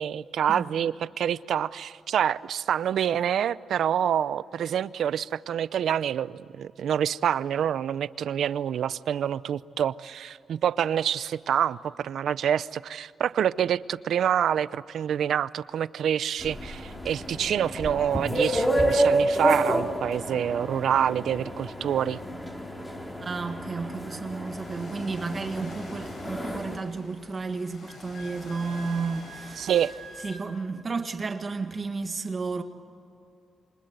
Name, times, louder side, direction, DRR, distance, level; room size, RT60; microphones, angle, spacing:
voice 1, 0.0-22.2 29.6-29.9, right 9 dB, 75° right, 0.6 m, -27 dB
sound 1, 16.4-26.8, right 1 dB, 15° left, 3.3 m, -29 dB
voice 2, 23.2-29.7 30.2-32.6, right 4 dB, 30° right, 1.6 m, -32 dB
Ocean, 24.4-30.3, left 2 dB, 55° left, 7.7 m, -46 dB
Wind instrument woodwind instrument, 27.9-30.4, right 3 dB, 90° left, 3.8 m, -45 dB
28.0 x 25.5 x 8.1 m
wide cardioid pair, 150°, 0 cm